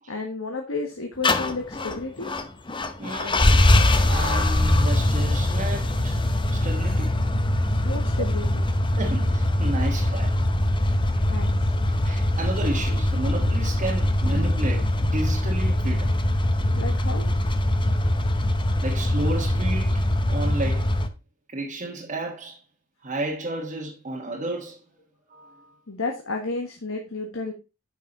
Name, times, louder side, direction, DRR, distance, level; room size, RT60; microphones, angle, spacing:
voice 1, 0.1-2.3 7.8-8.6 11.3-11.7 16.7-17.3 25.9-27.5, left 3 dB, 70° left, 1.6 m, -32 dB
sound 1, 1.2-21.1, left 1 dB, 25° left, 0.8 m, -22 dB
voice 2, 3.0-3.5 4.1-6.2 6.5-7.1 8.2-8.3 8.9-10.4 12.0-16.2 18.8-21.0 21.5-22.6 23.0-24.8 25.3-25.8, right 2 dB, 35° right, 1.4 m, -32 dB
9.7 x 5.9 x 4.1 m
head